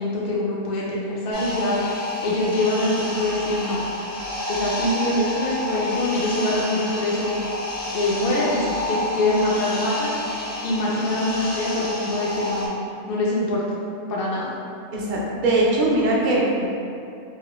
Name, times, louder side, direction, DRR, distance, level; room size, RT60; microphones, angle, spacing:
voice 1, 0.0-1.8 2.2-3.8 4.5-7.4 7.9-10.1 10.6-12.7 13.1-13.6 14.1-14.5, left 1 dB, 60° left, -5 dB, 0.6 m, -24 dB
sound 1, 1.3-12.7, left 1 dB, 85° left, 1.3 m, -29 dB
voice 2, 14.9-16.7, right 2 dB, 50° right, -5 dB, 0.6 m, -21 dB
2.8 x 2.8 x 3.0 m, 2.6 s
omnidirectional pair, 1.3 m